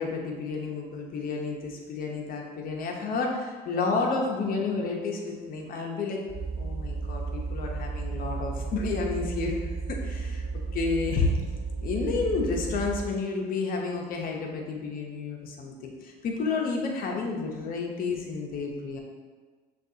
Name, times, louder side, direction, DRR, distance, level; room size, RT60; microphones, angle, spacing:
voice 1, 0.0-6.2 6.6-9.7 10.0-10.4 10.7-11.4 11.8-19.0, left 4 dB, 60° left, 0 dB, 0.8 m, -30 dB
sound 1, 6.3-13.2, right 4 dB, 35° right, 0.4 m, -33 dB
6.3 x 2.4 x 2.8 m, 1.5 s
cardioid pair, 110°, 17 cm